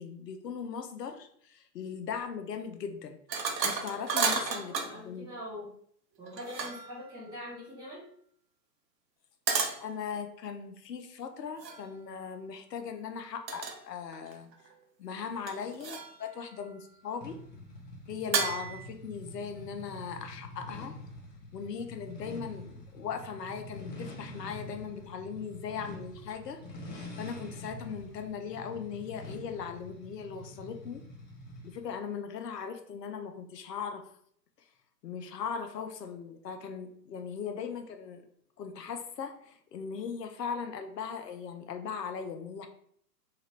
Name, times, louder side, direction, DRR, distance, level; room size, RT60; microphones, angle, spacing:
voice 1, 0.0-3.2 3.6-5.3 9.8-14.5 15.0-17.4 18.1-20.9 21.5-26.6 27.2-31.0 31.6-34.0 35.0-38.2 38.6-42.7, left 6 dB, 75° left, 6 dB, 0.6 m, -39 dB
sound 1, 3.3-5.0 6.2-7.0 9.5-9.8 11.6-11.8 13.5-13.8 14.1-14.7 15.5-16.2 18.3-18.9, right 5 dB, 80° right, 0.8 m, -32 dB
voice 2, 4.1-5.7 6.2-8.0, left 1 dB, 10° right, -11 dB, 0.6 m, -43 dB
sound 2, 17.2-31.9, left 1 dB, 25° left, 0.6 m, -46 dB
2.9 x 2.5 x 3.0 m, 0.65 s
hypercardioid pair, 130°, 50 cm